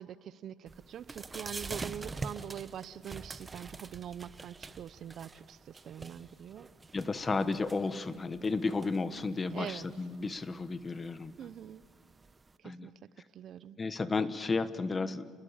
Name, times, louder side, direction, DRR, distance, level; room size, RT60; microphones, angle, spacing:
voice 1, 0.0-6.7 9.5-9.9 11.4-11.8 12.6-12.9 13.3-13.8, right 9 dB, 60° right, 17 dB, 0.7 m, -43 dB
sound 1, 0.7-12.5, right 3 dB, 25° right, 1.0 m, -46 dB
voice 2, 6.9-11.3 12.6-12.9 13.8-15.3, left 3 dB, 25° left, 13 dB, 1.2 m, -33 dB
29.0 x 20.5 x 7.3 m, 2.2 s
cardioid pair, 95°, 0 cm